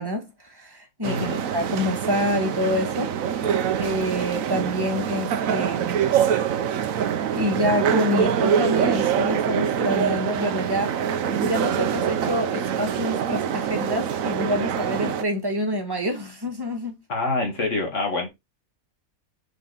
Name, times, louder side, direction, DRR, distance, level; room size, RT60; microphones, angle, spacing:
voice 1, 0.0-3.1 3.5-6.0 7.3-11.0 11.4-17.0, left 1 dB, 15° right, 1.4 m, -27 dB
voice 2, 1.0-1.4 17.1-18.3, left 3 dB, 55° left, 2.3 m, -26 dB
sound 1, 1.0-15.2, right 8 dB, 70° right, 1.1 m, -25 dB
6.0 x 4.2 x 4.1 m
omnidirectional pair, 1.5 m